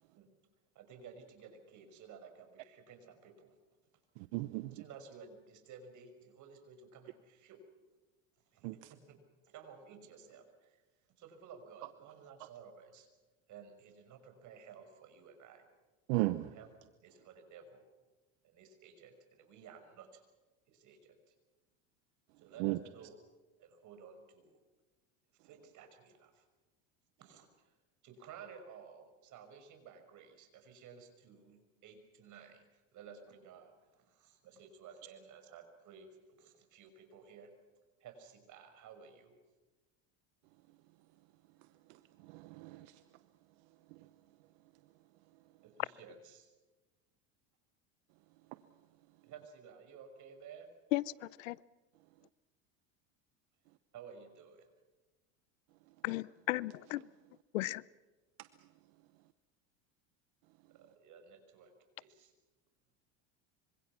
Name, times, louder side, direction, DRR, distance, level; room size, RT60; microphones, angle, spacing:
voice 1, 0.7-3.5 4.7-7.6 8.5-9.2 9.4-10.8 11.2-13.1 13.5-15.7 16.5-17.8 18.4-20.2 20.7-21.3 22.4-23.2 23.6-24.6 25.4-26.4 27.2-27.5 28.0-37.5 38.0-39.4 45.6-46.5 49.2-50.7 53.9-54.7 60.7-61.7 62.0-62.3, right 6 dB, 50° right, 5.9 m, -55 dB
voice 2, 4.3-4.7 8.6-8.9 16.1-16.5 22.6-22.8 42.3-42.9, right 20 dB, 70° right, 1.0 m, -35 dB
voice 3, 50.9-51.6 56.0-57.0 57.5-57.8, left 18 dB, 85° left, 0.7 m, -35 dB
26.0 x 25.5 x 6.1 m
supercardioid pair, 105°, 38 cm